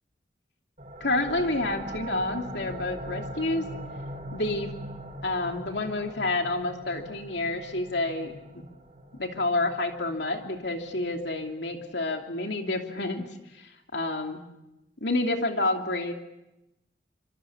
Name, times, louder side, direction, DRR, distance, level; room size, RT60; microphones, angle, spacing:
sound 1, 0.8-12.1, right 1 dB, 40° right, 5.3 m, -41 dB
voice 1, 1.0-3.7 4.3-4.7 5.2-8.6 9.2-14.4 15.0-16.1, left 2 dB, 70° left, 3 dB, 2.7 m, -29 dB
27.0 x 25.5 x 7.2 m, 0.96 s
head